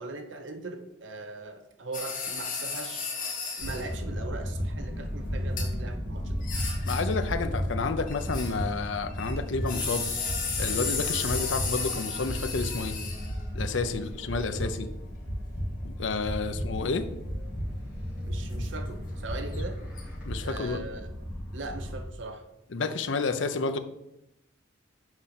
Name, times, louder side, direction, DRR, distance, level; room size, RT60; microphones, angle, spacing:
voice 1, 0.0-3.1 3.6-6.4 13.9-14.8 18.2-19.8 20.4-21.1 21.5-22.4, right 3 dB, 80° right, 7 dB, 0.8 m, -40 dB
sound 1, 1.9-3.9 5.6-5.7 6.4-7.2 8.1-8.8 9.1-13.4 19.5-19.6 20.0-20.1, left 5 dB, 45° left, 1.7 m, -34 dB
sound 2, 3.6-22.0, equal, 5° right, 2.7 m, -34 dB
voice 2, 6.8-10.1 10.6-13.0 13.5-14.9 15.8-17.0 20.2-20.8 22.7-23.8, left 4 dB, 80° left, 9 dB, 0.6 m, -30 dB
6.3 x 5.0 x 5.8 m, 0.86 s
head